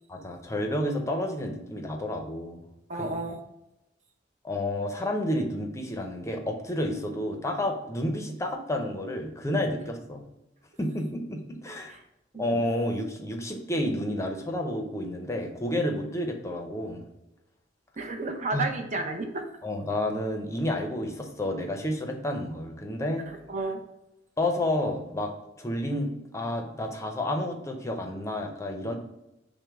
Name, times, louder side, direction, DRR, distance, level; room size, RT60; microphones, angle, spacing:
voice 1, 0.1-2.6 3.0-3.1 4.4-10.3 10.8-12.0 12.4-17.0 18.5-18.7 19.6-23.3 24.4-25.3 25.6-28.9, left 1 dB, 15° left, 3 dB, 0.6 m, -30 dB
voice 2, 2.9-3.4 11.9-12.0 18.0-19.5 23.3-23.8, right 3 dB, 40° right, 4 dB, 0.7 m, -31 dB
6.3 x 2.2 x 3.5 m, 0.90 s
head